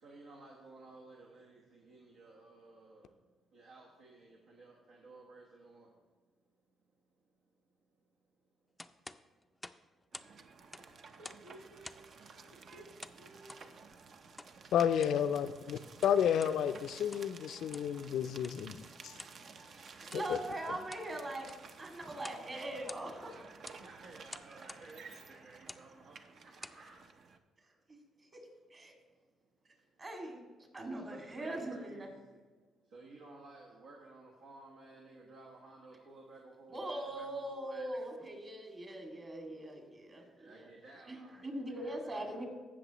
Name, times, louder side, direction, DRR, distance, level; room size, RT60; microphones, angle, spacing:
voice 1, 0.0-3.1 3.5-5.9 11.2-12.8 13.1-13.6 23.8-26.2 26.4-27.0 30.4-30.5 31.1-32.2 32.9-37.5 40.1-42.4, right 2 dB, 80° right, 1.2 m, -55 dB
sound 1, 8.8-10.3 10.6-11.5 11.8-12.2 13.0-13.7 14.4-14.5 14.9-15.2 15.8-16.6 17.0-17.4 17.7-18.0 18.4-18.6 19.2-19.4 20.0-20.3 20.7-21.1 21.4-21.7 22.2-22.5 22.7-23.3 23.6-23.8 24.3-24.9 25.6-25.9 26.4-26.8, left 2 dB, 10° left, 0.4 m, -50 dB
sound 2, 10.1-27.4, right 5 dB, 55° right, 0.7 m, -54 dB
voice 2, 14.7-18.8 20.1-20.4, left 9 dB, 75° left, 0.4 m, -31 dB
voice 3, 19.5-21.5 21.8-23.5 28.3-28.4 28.7-28.9 30.0-30.4 30.7-32.1 36.7-40.7 41.1-42.5, right 1 dB, 35° right, 2.3 m, -41 dB
16.0 x 6.3 x 3.0 m
cardioid pair, 90°, 0 cm